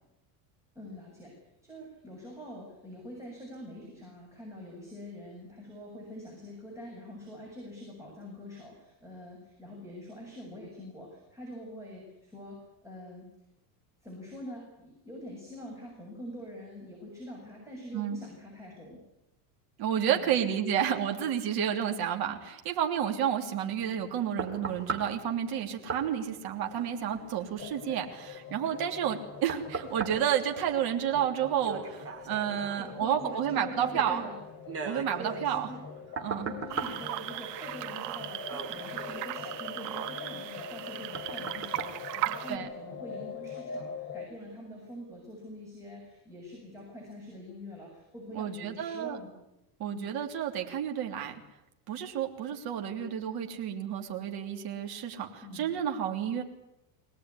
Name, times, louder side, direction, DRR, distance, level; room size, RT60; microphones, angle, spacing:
voice 1, 0.7-1.3 1.6-13.3 14.0-19.0 20.1-20.5 32.8-34.4 35.2-35.8 36.4-49.4 49.8-50.1 55.4-55.7, equal, 5° right, -3 dB, 7.7 m, -45 dB
voice 2, 19.8-34.2 34.8-35.7 36.2-36.5 42.5-42.7 48.3-49.2 49.8-51.3 51.9-56.4, right 9 dB, 50° right, 3 dB, 3.4 m, -31 dB
sound 1, 23.7-43.0 43.5-43.6, right 4 dB, 30° right, 3.6 m, -42 dB
sound 2, 27.6-44.3, left 6 dB, 30° left, 1.3 m, -44 dB
sound 3, 36.7-42.6, right 14 dB, 90° right, 2.1 m, -37 dB
23.0 x 18.5 x 9.9 m, 0.87 s
cardioid pair, 145°, 48 cm